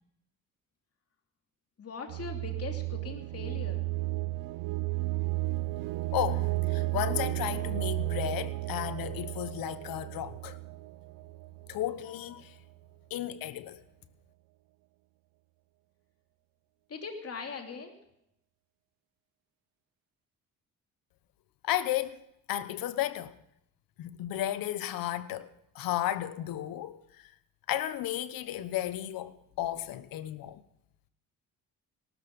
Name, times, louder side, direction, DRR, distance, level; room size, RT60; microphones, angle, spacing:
voice 1, 1.8-3.8 16.9-17.9, left 5 dB, 45° left, 3.0 m, -40 dB
sound 1, 2.1-11.9, right 20 dB, 85° right, 0.5 m, -33 dB
voice 2, 6.1-10.6 11.7-12.5 13.1-13.8 21.6-23.4 24.0-27.3 27.7-30.6, left 12 dB, 80° left, 1.1 m, -34 dB
18.5 x 13.5 x 5.4 m
cardioid pair, 85°, 34 cm